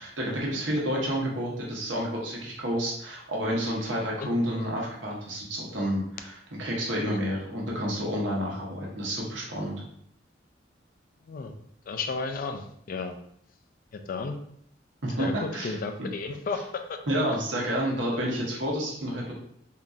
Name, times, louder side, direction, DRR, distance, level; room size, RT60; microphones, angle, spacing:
voice 1, 0.0-9.8 15.0-16.1 17.1-19.3, equal, 70° right, -3 dB, 1.0 m, -30 dB
voice 2, 11.9-13.2 14.1-14.4 15.2-16.8, left 4 dB, 45° left, 6 dB, 0.3 m, -33 dB
3.7 x 2.7 x 2.4 m, 0.70 s
head